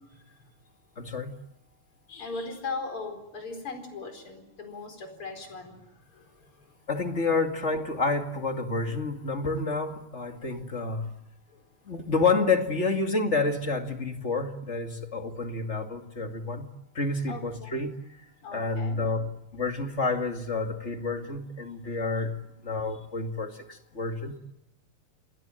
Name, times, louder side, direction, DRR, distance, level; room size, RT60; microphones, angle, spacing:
voice 1, 0.1-0.5 2.1-6.7 11.0-11.1 11.5-11.6 17.3-17.7 18.4-19.0, left 3 dB, 85° left, 5 dB, 5.5 m, -39 dB
voice 2, 1.0-1.3 6.9-11.1 11.9-16.7 16.9-17.9 18.5-22.4 22.6-24.4, left 3 dB, 30° left, 5 dB, 2.6 m, -29 dB
28.5 x 21.5 x 9.2 m, 0.86 s
omnidirectional pair, 2.4 m